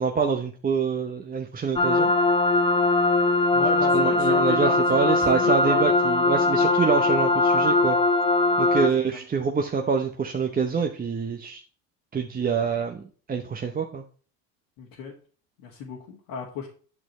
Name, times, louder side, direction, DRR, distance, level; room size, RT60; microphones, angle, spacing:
voice 1, 0.0-2.1 3.9-8.0 8.6-11.6 12.1-13.0 13.3-14.0, right 5 dB, 20° right, 2 dB, 0.8 m, -26 dB
sound 1, 1.8-8.9, left 2 dB, 15° left, 0.5 m, -21 dB
voice 2, 3.5-5.8 8.7-9.2 14.8-15.1 15.6-16.7, left 5 dB, 65° left, -3 dB, 1.9 m, -35 dB
8.9 x 6.3 x 3.1 m, 0.40 s
supercardioid pair, 90°, 46 cm